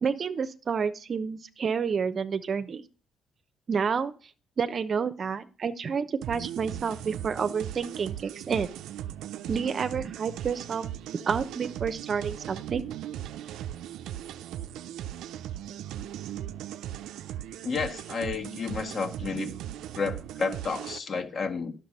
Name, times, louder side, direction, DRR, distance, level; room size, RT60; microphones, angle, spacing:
voice 1, 0.0-2.8 3.7-4.1 4.6-8.7 9.5-10.9 11.3-12.8, right 6 dB, 50° right, 0.8 m, -29 dB
sound 1, 6.2-21.0, right 11 dB, 90° right, 0.5 m, -38 dB
voice 2, 17.6-19.5 20.0-21.7, left 5 dB, 50° left, 1.8 m, -31 dB
10.5 x 6.8 x 5.5 m
cardioid pair, 90°, 0 cm